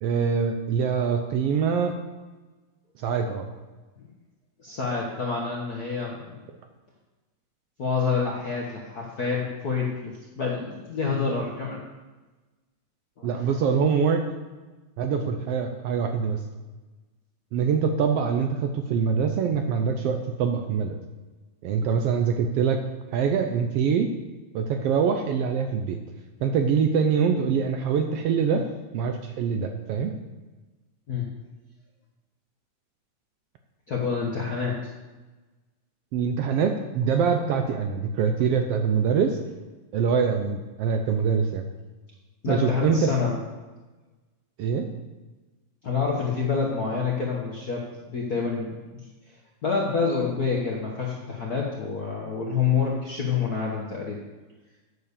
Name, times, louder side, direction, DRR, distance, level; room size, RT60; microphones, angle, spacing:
voice 1, 0.0-2.0 3.0-3.5 13.2-14.3 15.0-16.4 17.5-21.0 21.6-22.8 23.1-24.1 24.5-26.0 26.4-28.6 28.9-30.1 36.1-39.4 39.9-41.6 42.5-43.1 44.6-44.9, right 6 dB, 80° right, 6 dB, 1.4 m, -24 dB
voice 2, 4.6-6.4 7.8-11.8 13.2-13.5 31.1-31.3 33.9-34.8 42.4-43.4 45.8-48.8 49.6-54.2, left 5 dB, 60° left, -2 dB, 1.0 m, -27 dB
8.9 x 6.9 x 6.8 m, 1.2 s
omnidirectional pair, 3.4 m